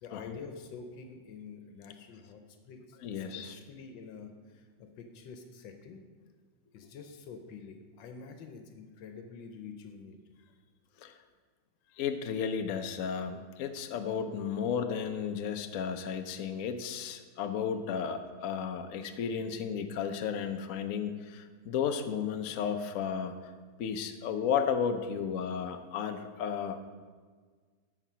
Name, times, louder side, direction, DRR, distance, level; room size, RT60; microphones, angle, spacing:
voice 1, 0.0-6.0 6.7-10.2, left 5 dB, 80° left, 5 dB, 1.5 m, -47 dB
voice 2, 3.0-3.5 11.0-11.2 12.0-23.5 23.8-26.8, left 7 dB, 60° left, 7 dB, 0.9 m, -33 dB
13.5 x 4.9 x 5.6 m, 1.5 s
omnidirectional pair, 2.0 m